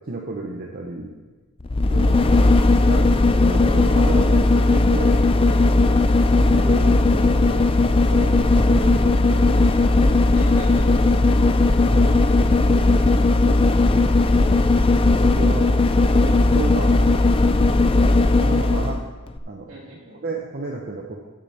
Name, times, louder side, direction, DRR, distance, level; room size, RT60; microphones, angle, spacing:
voice 1, 0.1-1.1 1.9-2.2 2.9-6.1 6.5-7.8 8.1-9.8 11.1-11.4 11.9-12.3 12.7-14.5 15.0-15.7 16.1-17.1 18.0-19.0 19.5-21.3, right 3 dB, 45° right, -1 dB, 0.9 m, -33 dB
sound 1, 1.6-19.0 19.4-19.5, left 2 dB, 25° left, 0.4 m, -17 dB
voice 2, 2.0-3.0 10.3-11.1 19.7-20.2, right 1 dB, 65° right, -3 dB, 2.7 m, -41 dB
13.5 x 6.8 x 4.3 m, 1.3 s
head